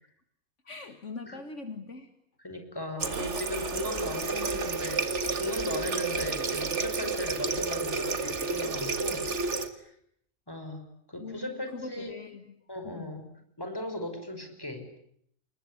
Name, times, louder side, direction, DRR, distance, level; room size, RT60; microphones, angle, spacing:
voice 1, 0.6-2.1 3.0-3.3 11.2-13.1, left 4 dB, 55° left, 8 dB, 2.0 m, -42 dB
voice 2, 2.4-9.9 10.5-10.8 11.1-12.1 12.7-13.2 13.6-14.9, left 1 dB, 15° left, 6 dB, 5.4 m, -37 dB
Water tap faucet, 3.0-9.7, right 4 dB, 55° right, 2.1 m, -31 dB
28.5 x 21.5 x 9.7 m, 0.70 s
omnidirectional pair, 1.5 m